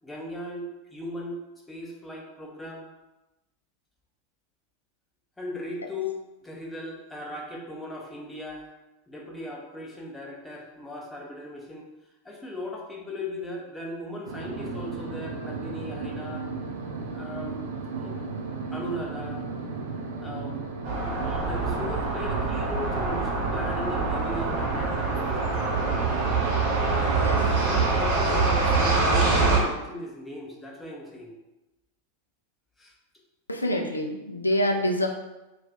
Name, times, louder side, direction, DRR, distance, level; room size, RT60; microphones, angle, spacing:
voice 1, 0.0-1.4 1.7-2.9 5.4-8.7 9.1-11.9 12.2-16.5 17.1-17.6 18.0-18.2 18.7-19.5 20.2-20.6 21.1-25.6 26.8-27.1 27.6-31.4 32.8-32.9, left 1 dB, 10° left, -1 dB, 0.6 m, -37 dB
sound 1, 14.3-28.0, right 4 dB, 65° right, 0.4 m, -35 dB
sound 2, 20.8-29.6, right 3 dB, 40° right, 0.9 m, -25 dB
voice 2, 33.5-35.1, equal, 80° left, 3 dB, 0.4 m, -26 dB
2.4 x 2.3 x 3.7 m, 1.0 s
figure-of-eight pair, 90°, 0 cm